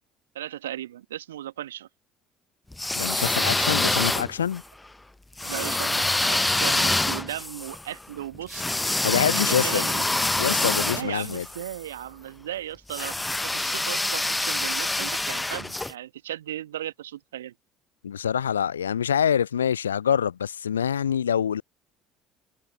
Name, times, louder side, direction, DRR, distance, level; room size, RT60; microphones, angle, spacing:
voice 1, 0.3-1.9 3.8-3.9 5.4-8.7 9.3-10.0 10.9-13.2 13.4-17.5, right 12 dB, 75° right, 1.3 m, -36 dB
sound 1, 2.7-4.6 5.4-11.7 12.9-15.9, left 2 dB, 10° left, 0.9 m, -26 dB
voice 2, 3.0-4.6 9.0-9.9 10.4-11.5 18.0-21.6, left 8 dB, 80° left, 0.4 m, -25 dB
figure-of-eight pair, 55°, 0 cm